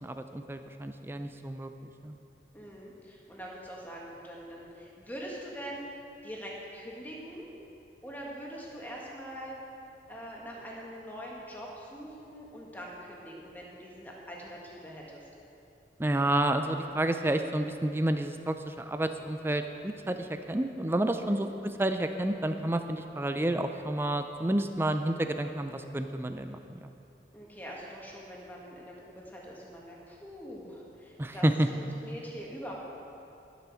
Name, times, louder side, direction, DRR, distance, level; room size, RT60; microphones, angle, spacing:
voice 1, 0.0-2.1 16.0-26.9 31.2-31.7, right 1 dB, 15° right, 7 dB, 0.4 m, -30 dB
voice 2, 2.5-5.9 6.2-7.5 8.0-9.6 10.1-15.2 21.1-21.5 27.3-31.5 31.7-32.7, equal, 10° left, -3 dB, 1.7 m, -43 dB
12.0 x 8.2 x 6.3 m, 2.7 s
head